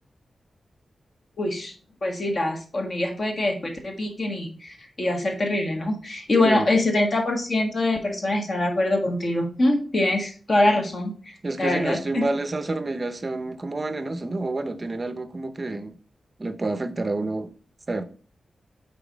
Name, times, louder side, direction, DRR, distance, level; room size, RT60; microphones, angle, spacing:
voice 1, 1.4-1.7 2.0-12.3, left 2 dB, 40° left, 1.4 m, -24 dB
voice 2, 11.4-15.9 16.4-17.5 17.9-18.1, right 2 dB, 30° right, 0.6 m, -28 dB
5.2 x 4.1 x 5.0 m
wide cardioid pair, 145°, 0 cm